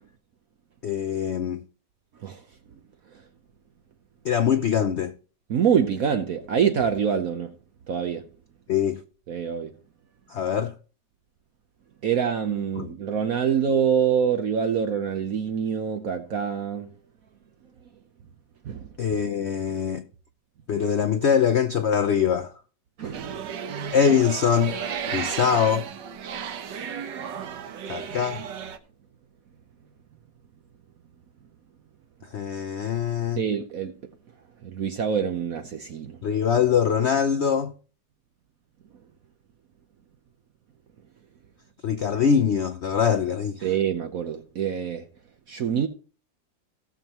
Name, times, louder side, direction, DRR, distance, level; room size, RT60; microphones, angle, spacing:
voice 1, 0.8-1.6 4.2-5.1 8.7-9.0 10.3-10.7 12.8-12.9 19.0-20.1 20.7-22.5 23.9-24.8 25.1-25.9 27.9-28.4 32.3-33.4 36.2-37.7 41.8-43.7, left 7 dB, 75° left, 0.6 m, -23 dB
voice 2, 5.5-7.5 7.9-8.2 9.3-9.7 12.0-16.9 18.7-18.9 23.0-23.5 33.4-33.9 34.6-36.2 43.6-45.0 45.5-45.9, right 7 dB, 60° right, 1.1 m, -25 dB
sound 1, 23.1-28.8, right 7 dB, 75° right, 1.6 m, -33 dB
17.0 x 7.2 x 3.0 m
omnidirectional pair, 2.0 m